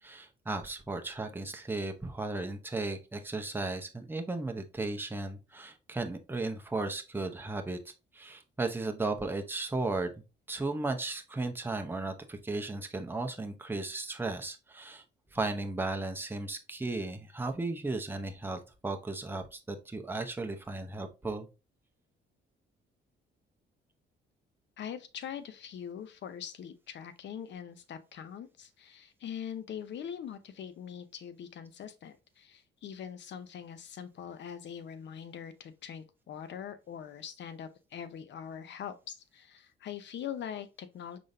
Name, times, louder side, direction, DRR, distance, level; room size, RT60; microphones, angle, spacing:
voice 1, 0.0-15.0 15.3-21.5, right 2 dB, 10° right, 0.8 m, -35 dB
voice 2, 24.8-41.2, left 8 dB, 65° left, 0.8 m, -42 dB
5.1 x 3.8 x 2.7 m
cardioid pair, 90°, 20 cm